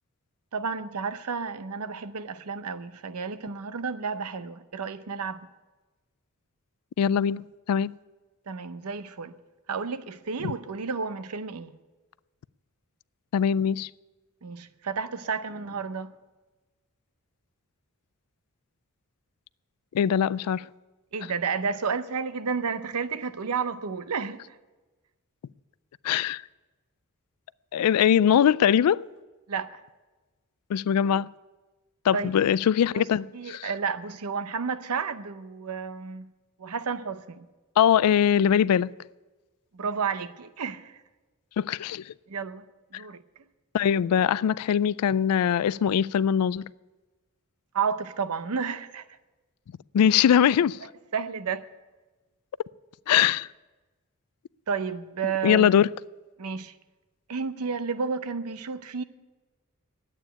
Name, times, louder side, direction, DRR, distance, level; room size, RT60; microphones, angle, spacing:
voice 1, 0.5-5.5 8.5-9.3 9.7-11.7 14.4-16.1 21.1-24.4 29.5-29.8 32.1-32.3 32.9-33.0 33.3-36.3 36.6-37.5 39.7-41.0 42.3-42.6 42.9-43.2 47.7-49.0 51.1-51.7 54.7-55.8 56.4-56.7 57.3-59.0, right 5 dB, 85° right, 0.7 m, -31 dB
voice 2, 7.0-7.4 7.7-7.9 10.4-10.5 13.3-13.9 19.9-20.6 26.0-26.4 27.7-29.1 30.7-31.3 32.1-33.7 37.8-38.9 41.6-42.0 42.9-43.0 43.7-46.6 49.9-50.8 53.1-53.5 55.4-55.9, left 8 dB, 90° left, 0.3 m, -22 dB
11.0 x 8.9 x 8.9 m
head